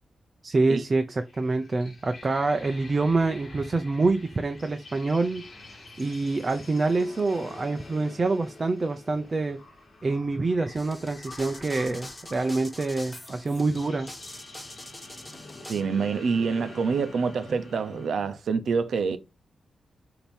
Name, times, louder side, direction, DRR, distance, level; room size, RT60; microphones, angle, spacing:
voice 1, 0.4-5.5 6.0-9.6 10.0-14.1, right 3 dB, 30° right, 0.7 m, -26 dB
sound 1, 1.1-18.1, left 2 dB, 40° left, 2.9 m, -47 dB
sound 2, 10.8-15.8, left 1 dB, 15° left, 1.5 m, -43 dB
voice 2, 15.7-19.2, right 5 dB, 65° right, 0.8 m, -26 dB
7.2 x 3.0 x 5.3 m
wide cardioid pair, 130°, 0 cm